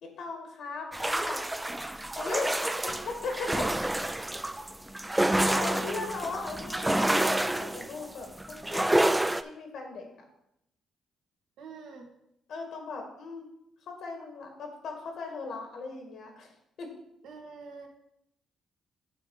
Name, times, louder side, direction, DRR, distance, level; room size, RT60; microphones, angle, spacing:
voice 1, 0.0-1.4 2.2-2.5 2.8-3.7 5.3-8.8 9.4-10.1 12.5-13.5 13.9-16.5 16.8-16.9, left 3 dB, 75° left, 3 dB, 1.9 m, -38 dB
sound 1, 0.9-9.4, right 1 dB, 10° right, 0.4 m, -28 dB
voice 2, 5.0-6.1 11.6-12.1 17.2-17.9, right 4 dB, 80° right, 2 dB, 1.5 m, -45 dB
8.7 x 3.6 x 6.4 m, 0.80 s
cardioid pair, 90°, 0 cm